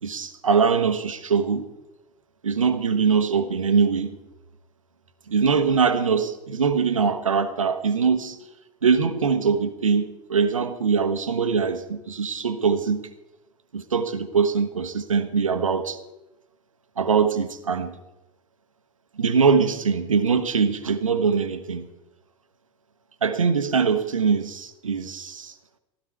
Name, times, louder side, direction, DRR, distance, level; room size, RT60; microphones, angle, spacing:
voice 1, 0.0-1.7 2.4-4.2 5.3-8.4 8.8-13.0 13.7-16.0 17.0-18.0 19.2-21.9 23.2-25.5, right 5 dB, 80° right, 10 dB, 1.2 m, -22 dB
15.5 x 13.0 x 4.6 m, 0.96 s
figure-of-eight pair, 80°, 17 cm